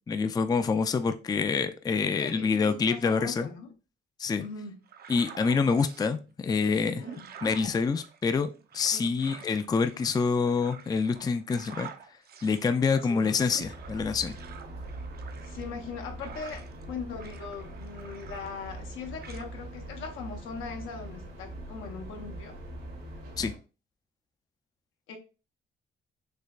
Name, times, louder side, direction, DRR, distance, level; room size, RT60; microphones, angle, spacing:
voice 1, 0.1-3.5 4.2-4.4 5.1-7.1 7.4-11.9 12.4-14.3 23.4-23.5, left 5 dB, 20° left, 10 dB, 0.4 m, -26 dB
voice 2, 2.2-3.7 4.4-4.8 7.0-7.3 8.9-9.1 13.0-13.3 15.4-22.6 25.1-25.2, left 5 dB, 90° left, 3 dB, 0.9 m, -40 dB
sound 1, 4.9-6.1 6.6-16.9 17.2-18.9 19.2-19.5, right 7 dB, 50° right, 0.6 m, -48 dB
sound 2, 13.6-23.6, right 1 dB, 85° right, 2.1 m, -42 dB
6.4 x 2.2 x 2.4 m, 0.32 s
cardioid pair, 90°, 20 cm